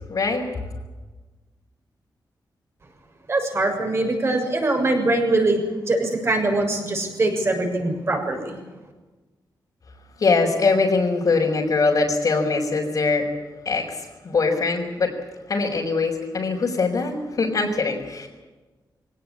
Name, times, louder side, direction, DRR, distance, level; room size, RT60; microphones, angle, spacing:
voice 1, 0.1-0.4 10.2-13.2 13.6-15.1 15.5-18.3, left 4 dB, 55° left, -3 dB, 4.7 m, -22 dB
voice 2, 3.3-8.6, right 2 dB, 35° right, 3 dB, 6.8 m, -22 dB
23.5 x 18.5 x 8.8 m, 1.2 s
wide cardioid pair, 130°, 8 cm